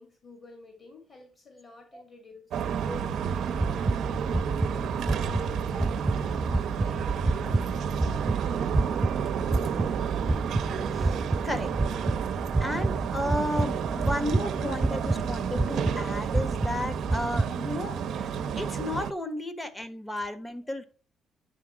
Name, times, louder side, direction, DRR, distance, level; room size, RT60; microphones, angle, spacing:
voice 1, 0.0-4.3 4.9-8.6 13.9-14.2 14.6-14.7 17.2-17.3, left 3 dB, 45° left, 2 dB, 2.8 m, -51 dB
sound 1, 2.5-19.1, right 7 dB, 70° right, 0.8 m, -31 dB
sound 2, 3.6-17.5, right 2 dB, 25° right, 0.4 m, -29 dB
voice 2, 12.6-20.8, left 1 dB, 15° left, 10 dB, 1.3 m, -33 dB
10.0 x 3.6 x 5.8 m, 0.36 s
cardioid pair, 90°, 0 cm